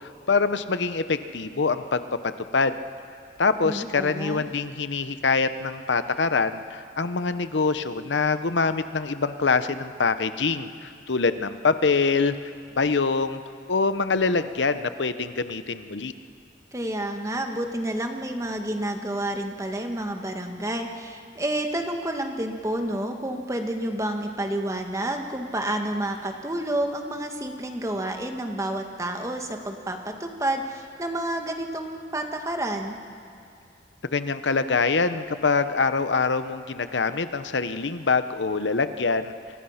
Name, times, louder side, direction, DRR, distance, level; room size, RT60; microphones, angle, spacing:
voice 1, 0.0-2.0 2.5-2.7 3.4-12.4 12.8-13.4 13.7-16.1 34.1-39.3, left 4 dB, 80° left, 11 dB, 0.8 m, -24 dB
voice 2, 3.6-4.4 16.7-33.0, right 1 dB, 15° right, 4 dB, 1.6 m, -29 dB
28.5 x 24.0 x 5.8 m, 2.3 s
head